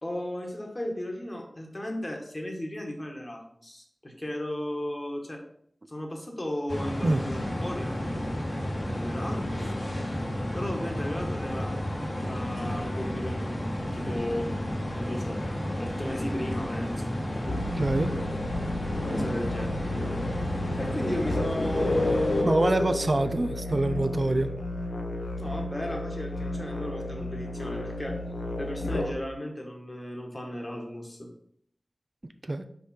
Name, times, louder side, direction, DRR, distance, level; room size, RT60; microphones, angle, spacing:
voice 1, 0.0-5.4 5.9-8.0 8.7-9.8 10.5-11.7 12.2-13.5 13.9-14.5 14.9-15.4 15.8-17.1 19.0-19.7 20.8-22.9 23.9-24.0 25.4-28.2 28.6-31.3, left 1 dB, 35° left, 2 dB, 1.5 m, -35 dB
sound 1, 6.7-22.4, left 1 dB, 55° left, 1.5 m, -32 dB
sound 2, 17.5-29.1, left 2 dB, 85° left, 0.8 m, -32 dB
voice 2, 17.8-18.1 22.4-24.5 32.4-32.6, right 2 dB, 50° right, 8 dB, 0.4 m, -25 dB
5.1 x 4.9 x 4.3 m, 0.67 s
wide cardioid pair, 45°, 0 cm